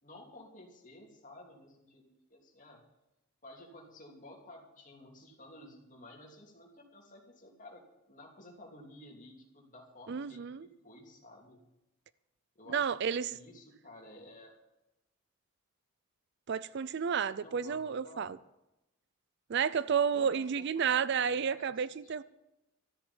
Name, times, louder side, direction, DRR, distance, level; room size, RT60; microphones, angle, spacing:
voice 1, 0.0-2.8 3.4-7.8 8.1-11.6 12.5-14.5 17.4-18.3 20.1-22.2, left 1 dB, 35° left, 3.0 m, -53 dB
voice 2, 10.1-10.7 12.7-13.4 16.5-18.4 19.5-22.2, right 7 dB, 50° right, 0.4 m, -31 dB
13.5 x 8.1 x 8.7 m
head